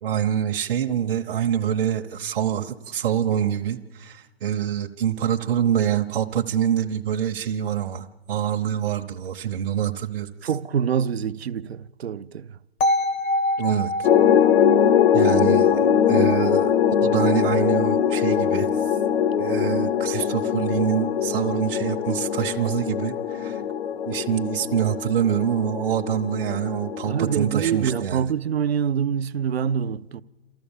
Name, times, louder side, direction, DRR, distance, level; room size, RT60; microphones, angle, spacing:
voice 1, 0.0-10.5 13.6-14.1 15.1-16.7 17.0-19.0 19.4-23.6 24.1-28.3, right 9 dB, 60° right, 1.0 m, -25 dB
voice 2, 10.4-12.5 27.1-30.2, right 8 dB, 85° right, 0.7 m, -25 dB
sound 1, 12.8-16.8, left 1 dB, 15° left, 0.6 m, -27 dB
sound 2, 14.0-28.0, left 8 dB, 70° left, 0.8 m, -22 dB
28.0 x 14.0 x 7.3 m
hypercardioid pair, 145°, 31 cm